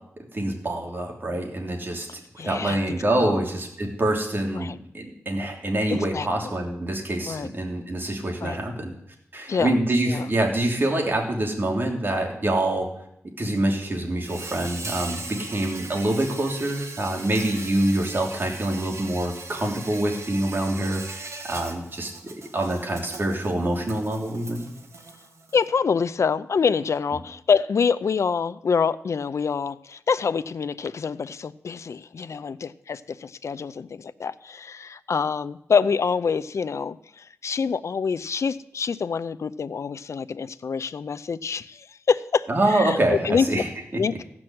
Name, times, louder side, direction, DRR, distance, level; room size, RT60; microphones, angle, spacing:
voice 1, 0.3-2.1 2.4-8.9 9.3-12.9 13.4-22.1 22.5-24.7 42.5-43.7, right 1 dB, 45° right, 0 dB, 3.2 m, -25 dB
voice 2, 2.4-3.4 4.5-4.8 5.9-6.3 7.3-7.5 8.4-8.6 9.5-9.7 10.1-10.3 25.5-43.0 43.2-43.6 44.0-44.1, left 6 dB, 70° left, 14 dB, 0.5 m, -26 dB
Insect, 14.2-25.6, right 3 dB, 65° right, 1.8 m, -39 dB
15.5 x 6.1 x 7.8 m, 0.76 s
cardioid pair, 65°, 5 cm